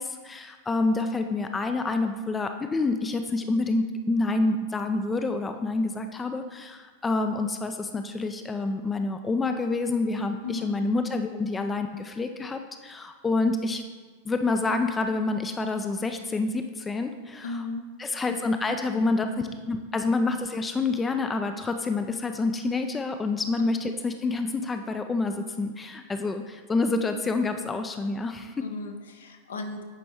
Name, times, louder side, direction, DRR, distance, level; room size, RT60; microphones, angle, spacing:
voice 1, 0.0-13.8 14.2-17.6 18.0-19.3 19.7-28.7, left 3 dB, 15° left, 7 dB, 0.4 m, -28 dB
voice 2, 17.4-17.9 18.3-18.4 19.2-19.6 28.6-29.8, left 3 dB, 65° left, 5 dB, 0.7 m, -35 dB
9.0 x 5.0 x 3.5 m, 1.4 s
figure-of-eight pair, 90°, 0 cm